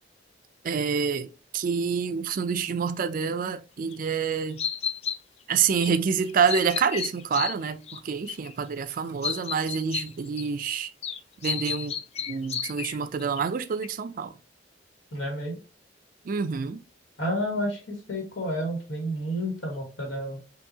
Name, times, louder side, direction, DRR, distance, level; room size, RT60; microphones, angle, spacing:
voice 1, 0.6-4.6 5.5-10.9 11.4-14.4 16.2-16.8, right 6 dB, 45° right, 0.4 m, -27 dB
sound 1, 3.9-4.0 4.6-5.2 5.8-6.0 6.3-8.0 8.3-8.5 8.9-9.0 9.2-10.7 11.0-13.4 13.8-13.9, left 7 dB, 35° left, 0.3 m, -32 dB
voice 2, 15.1-15.6 17.2-20.4, equal, 85° left, 1.7 m, -30 dB
5.4 x 2.7 x 2.7 m
head